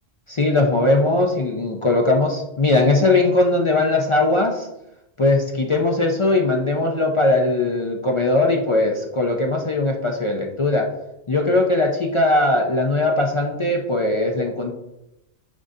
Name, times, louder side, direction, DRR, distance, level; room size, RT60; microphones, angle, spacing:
voice 1, 0.3-4.7 5.2-10.9 11.3-14.7, left 2 dB, 45° left, 1 dB, 0.4 m, -19 dB
9.7 x 3.8 x 2.7 m, 0.88 s
omnidirectional pair, 1.3 m